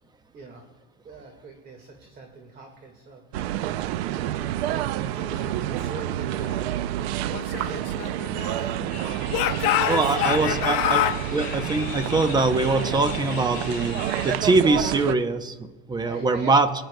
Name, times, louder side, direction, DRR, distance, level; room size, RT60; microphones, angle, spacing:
voice 1, 0.3-0.6 1.0-3.8 4.2-6.7 7.0-8.7 16.0-16.5, right 4 dB, 30° right, 3 dB, 1.7 m, -43 dB
sound 1, 3.3-15.2, right 12 dB, 85° right, 0.5 m, -29 dB
Speech / Shout, 7.3-8.9 9.3-11.2, left 12 dB, 60° left, 0.9 m, -26 dB
sound 2, 8.9-14.4, left 7 dB, 30° left, 3.6 m, -38 dB
voice 2, 9.9-11.1 11.3-15.6 15.9-16.7, right 3 dB, 15° right, 10 dB, 0.7 m, -23 dB
23.5 x 10.5 x 2.2 m, 1.3 s
supercardioid pair, 135°, 31 cm